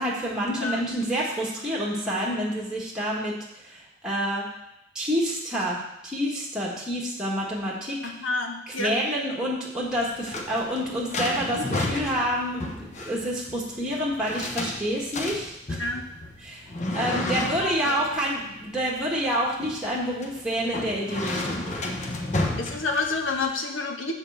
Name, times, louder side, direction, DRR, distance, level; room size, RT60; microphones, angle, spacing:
voice 1, 0.0-3.3 3.6-4.4 4.9-5.8 6.0-8.0 8.7-15.8 16.4-21.8, equal, 5° right, -4 dB, 1.5 m, -28 dB
voice 2, 8.0-8.9 11.5-11.6 15.8-16.0 17.6-17.9 22.6-24.1, left 3 dB, 90° left, 2 dB, 1.2 m, -29 dB
sound 1, 9.8-23.5, left 2 dB, 40° left, 0.9 m, -32 dB
7.3 x 4.4 x 6.9 m, 0.83 s
head